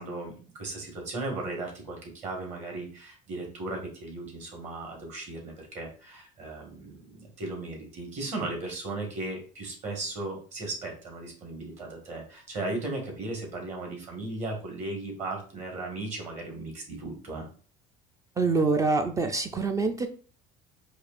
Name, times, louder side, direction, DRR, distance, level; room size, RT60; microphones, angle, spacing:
voice 1, 0.0-17.5, right 2 dB, 45° right, 1 dB, 1.6 m, -36 dB
voice 2, 18.4-20.1, right 3 dB, 20° right, 6 dB, 0.3 m, -25 dB
4.8 x 2.5 x 2.4 m, 0.41 s
cardioid pair, 125°, 16 cm